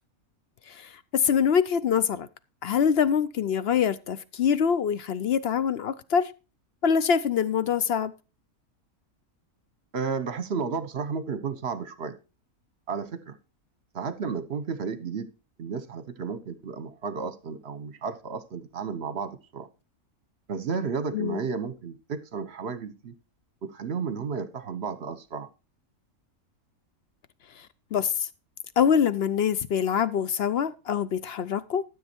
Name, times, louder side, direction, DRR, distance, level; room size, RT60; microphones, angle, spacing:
voice 1, 0.7-2.3 2.6-6.3 6.8-8.1 21.1-21.4 27.9-28.3 28.8-31.8, left 7 dB, 55° left, 0.7 m, -24 dB
voice 2, 9.9-12.1 12.9-13.4 13.9-15.3 15.6-19.7 20.5-23.1 23.6-25.5, right 5 dB, 50° right, 1.2 m, -33 dB
13.0 x 7.5 x 4.4 m
omnidirectional pair, 1.5 m